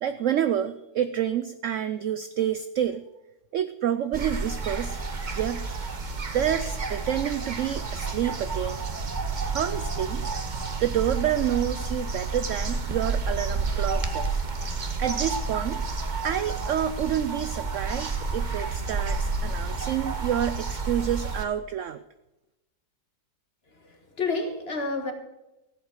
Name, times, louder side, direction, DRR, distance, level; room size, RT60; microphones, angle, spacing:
voice 1, 0.0-3.0 3.5-5.9 6.3-8.8 9.5-10.2 10.8-14.4 15.0-15.8 16.2-22.0, right 10 dB, 80° right, 12 dB, 0.6 m, -28 dB
sound 1, 4.1-21.4, right 4 dB, 30° right, 1.0 m, -30 dB
voice 2, 23.8-25.1, left 3 dB, 35° left, 5 dB, 1.7 m, -29 dB
15.0 x 8.1 x 6.5 m, 0.97 s
omnidirectional pair, 1.9 m